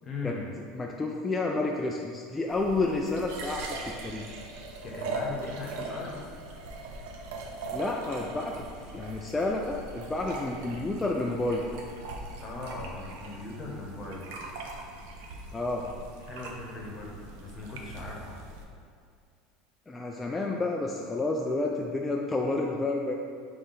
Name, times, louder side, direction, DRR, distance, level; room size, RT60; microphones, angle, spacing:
voice 1, 0.0-0.5 4.8-6.3 12.4-14.4 16.3-18.4, left 3 dB, 35° left, -2 dB, 1.0 m, -39 dB
voice 2, 0.7-4.3 7.7-8.6 8.9-11.7 15.5-15.9 19.9-23.1, left 2 dB, 15° left, 0 dB, 0.3 m, -30 dB
sound 1, 2.5-18.6, right 2 dB, 75° right, 0.5 m, -40 dB
3.6 x 3.3 x 4.0 m, 2.3 s
supercardioid pair, 100°, 0 cm